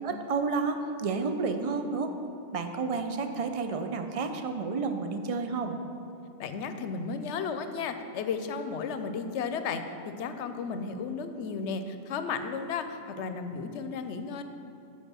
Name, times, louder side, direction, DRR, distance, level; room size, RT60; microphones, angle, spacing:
voice 1, 0.0-2.1 2.5-5.8, right 4 dB, 50° right, 6 dB, 0.4 m, -30 dB
voice 2, 6.4-14.4, left 5 dB, 85° left, 9 dB, 0.9 m, -34 dB
7.9 x 5.2 x 6.1 m, 2.7 s
omnidirectional pair, 1.2 m